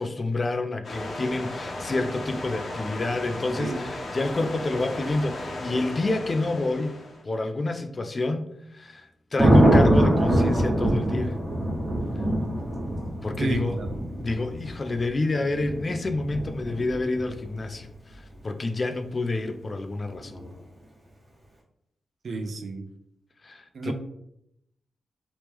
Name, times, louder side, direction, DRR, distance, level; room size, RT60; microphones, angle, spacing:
voice 1, 0.0-6.9 7.2-8.4 8.7-11.4 13.2-13.8 14.2-20.4 23.4-23.9, left 2 dB, 30° left, 7 dB, 0.3 m, -28 dB
sound 1, 0.8-7.2, left 1 dB, 50° left, 0.8 m, -35 dB
Thunder, 9.4-17.4 20.2-20.5, right 1 dB, 15° right, 1.0 m, -23 dB
voice 2, 13.4-13.9 22.2-22.9 23.7-23.9, right 3 dB, 55° right, 7 dB, 0.4 m, -31 dB
3.0 x 3.0 x 3.4 m, 0.78 s
wide cardioid pair, 135°, 0 cm